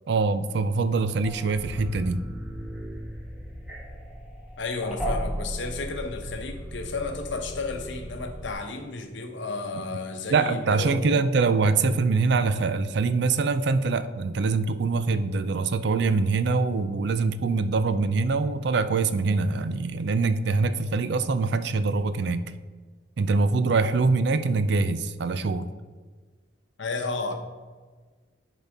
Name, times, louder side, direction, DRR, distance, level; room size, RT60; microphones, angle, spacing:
voice 1, 0.1-2.2 10.3-22.4 23.2-25.7, right 4 dB, 60° right, 12 dB, 0.4 m, -24 dB
sound 1, 1.2-8.5, equal, 5° right, 1.2 m, -36 dB
voice 2, 4.6-11.5 26.8-27.3, left 3 dB, 75° left, 5 dB, 0.9 m, -32 dB
10.5 x 4.1 x 3.5 m, 1.4 s
head